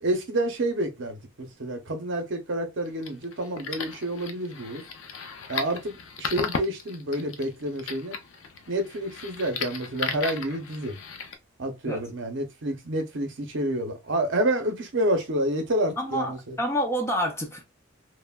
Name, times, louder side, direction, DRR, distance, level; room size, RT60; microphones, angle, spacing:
voice 1, 0.0-4.8 5.5-8.2 8.7-11.0 11.6-16.5, right 1 dB, 60° right, 0.7 m, -29 dB
sound 1, 2.8-11.3, left 5 dB, 70° left, 0.5 m, -35 dB
voice 2, 16.0-17.6, equal, 10° left, 0.4 m, -28 dB
3.2 x 2.1 x 2.2 m
head